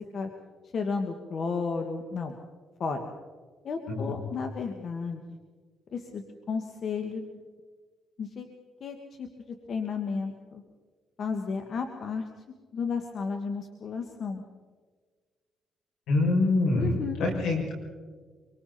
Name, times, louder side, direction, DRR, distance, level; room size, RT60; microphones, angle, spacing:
voice 1, 0.7-2.3 2.8-3.1 3.6-5.4 5.9-7.4 8.2-8.5 8.8-10.6 11.2-12.2 12.7-14.4 16.8-17.2, left 5 dB, 55° left, 5 dB, 1.8 m, -33 dB
voice 2, 16.1-17.7, left 2 dB, 80° left, -1 dB, 7.0 m, -25 dB
25.5 x 24.0 x 4.3 m, 1.5 s
cardioid pair, 90°, 0 cm